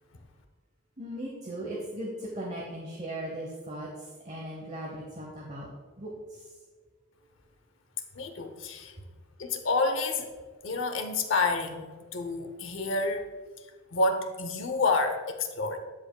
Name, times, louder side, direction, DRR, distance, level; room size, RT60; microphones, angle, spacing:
voice 1, 1.0-5.7 6.0-6.6, right 1 dB, 35° right, -2 dB, 0.9 m, -38 dB
voice 2, 8.1-8.9 9.4-10.3 10.6-13.3 13.9-15.8, left 3 dB, 65° left, 6 dB, 0.8 m, -29 dB
12.5 x 5.2 x 2.3 m, 1.5 s
head